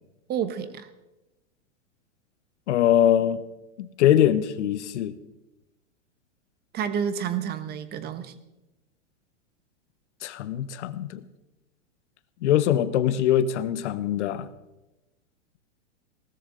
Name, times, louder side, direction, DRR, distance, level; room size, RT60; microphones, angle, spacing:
voice 1, 0.3-0.9 6.7-8.3, right 8 dB, 25° right, 12 dB, 1.1 m, -29 dB
voice 2, 2.7-3.4 3.8-5.1 10.2-11.2 12.4-14.5, left 11 dB, 65° left, 15 dB, 1.1 m, -22 dB
18.5 x 13.5 x 3.9 m, 1.0 s
hypercardioid pair, 125°, 37 cm